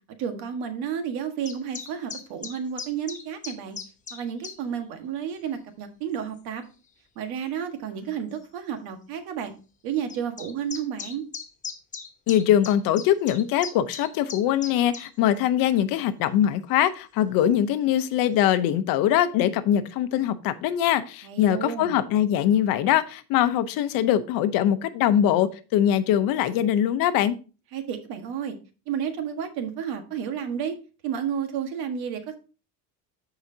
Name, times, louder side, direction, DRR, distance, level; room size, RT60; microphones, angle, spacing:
voice 1, 0.2-3.8 4.1-6.6 7.1-9.5 9.8-11.2 21.2-22.0 27.7-28.5 28.9-30.7 31.0-32.4, right 8 dB, 85° right, 7 dB, 1.6 m, -31 dB
sound 1, 1.5-4.6 5.3-5.5 6.3-6.4 7.6-7.7 8.0-8.1 8.3-8.4 10.1-15.1, left 6 dB, 20° left, 1.0 m, -37 dB
voice 2, 12.3-27.4, left 11 dB, 65° left, 12 dB, 0.8 m, -22 dB
14.0 x 4.9 x 2.8 m, 0.34 s
cardioid pair, 175°, 36 cm